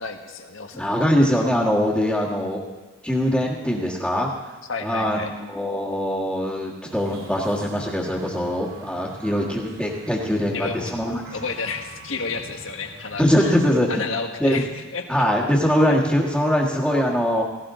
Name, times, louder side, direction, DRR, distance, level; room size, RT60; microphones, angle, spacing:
voice 1, 0.0-0.9 4.7-5.3 10.3-10.9 11.3-13.6 13.9-15.1, left 4 dB, 75° left, 4 dB, 1.5 m, -31 dB
voice 2, 0.7-2.6 3.0-4.3 4.8-11.2 13.2-14.0 14.4-14.6 15.1-17.4, equal, 5° left, -7 dB, 1.6 m, -22 dB
sound 1, 6.9-13.7, right 2 dB, 90° right, 3.1 m, -44 dB
17.5 x 16.5 x 3.8 m, 1.2 s
head